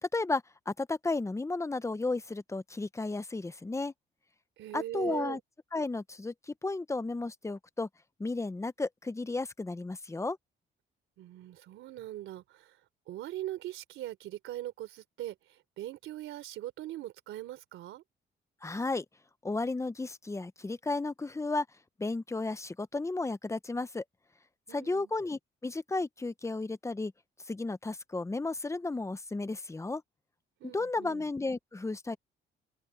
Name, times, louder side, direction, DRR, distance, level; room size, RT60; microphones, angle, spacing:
voice 1, 0.0-3.9 4.7-5.4 5.7-7.9 8.2-10.4 18.6-19.0 19.4-21.7 22.0-24.0 24.7-27.1 27.5-30.0 30.6-32.2, left 3 dB, 15° left, 0.9 m, -33 dB
voice 2, 4.6-5.4 11.2-12.8 13.1-18.0 24.7-25.1 30.6-31.3, right 14 dB, 85° right, 3.5 m, -41 dB
open air
cardioid pair, 90°, 20 cm